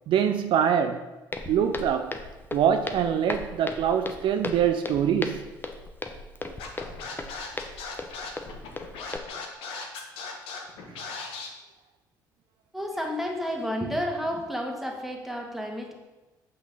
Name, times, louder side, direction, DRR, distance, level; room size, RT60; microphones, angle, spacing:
voice 1, 0.1-1.0 1.5-2.2 2.5-5.4 10.9-11.0, right 8 dB, 55° right, 7 dB, 0.5 m, -24 dB
Walk footsteps, 1.3-9.2, left 2 dB, 20° left, 0.9 m, -37 dB
Scratching (performance technique), 6.6-11.5, left 4 dB, 65° left, 1.3 m, -37 dB
voice 2, 12.7-15.9, equal, ahead, 1 dB, 1.8 m, -31 dB
8.5 x 5.8 x 4.1 m, 1.1 s
figure-of-eight pair, 50°, 10 cm